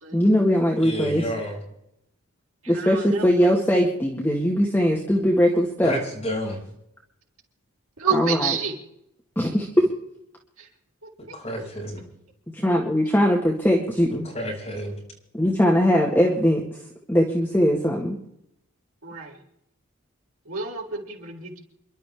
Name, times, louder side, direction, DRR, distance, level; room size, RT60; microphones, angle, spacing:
voice 1, 0.1-1.2 2.7-6.0 8.1-8.6 9.4-9.9 12.5-14.3 15.3-18.2, equal, 10° left, -2 dB, 1.9 m, -21 dB
voice 2, 0.8-1.5 5.8-6.6 11.3-12.0 14.3-15.0, equal, 30° left, -3 dB, 6.6 m, -30 dB
voice 3, 2.6-3.3 8.0-8.7 10.6-10.7 11.3-11.7 19.0-19.4 20.5-21.6, right 5 dB, 75° right, 0 dB, 3.9 m, -29 dB
28.5 x 12.0 x 3.7 m, 0.78 s
head